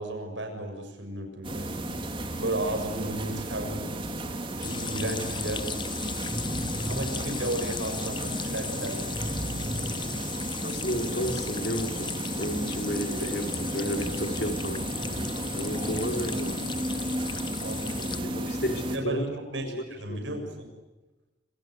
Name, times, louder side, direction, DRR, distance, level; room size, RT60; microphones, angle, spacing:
voice 1, 0.0-1.8 2.4-3.9 4.6-5.7 6.9-9.1 16.3-16.4 16.9-18.4 18.9-20.7, right 1 dB, 80° right, 4 dB, 6.9 m, -34 dB
sound 1, 1.4-19.0, right 1 dB, 25° right, 3.3 m, -33 dB
sound 2, 4.6-18.2, left 7 dB, 25° left, 0.8 m, -37 dB
sound 3, 6.3-8.0 9.1-10.8, equal, 5° left, 6.9 m, -36 dB
voice 2, 10.6-12.1 12.4-14.9 15.5-16.6 18.2-19.3 19.6-20.2, equal, 60° left, 5 dB, 3.9 m, -32 dB
27.0 x 27.0 x 8.1 m, 1.1 s
head